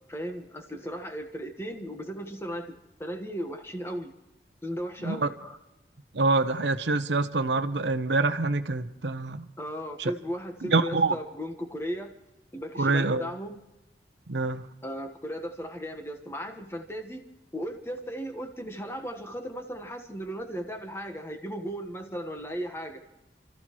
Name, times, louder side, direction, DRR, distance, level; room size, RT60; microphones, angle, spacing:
voice 1, 0.0-4.1 4.6-5.6 9.6-12.1 12.5-13.6 14.8-17.3 17.5-23.0, equal, 15° left, 6 dB, 1.4 m, -36 dB
voice 2, 6.1-9.5 10.0-10.1 10.6-11.2 12.8-13.3 14.3-14.6, right 3 dB, 85° right, 11 dB, 0.9 m, -26 dB
29.5 x 14.5 x 3.1 m, 0.96 s
head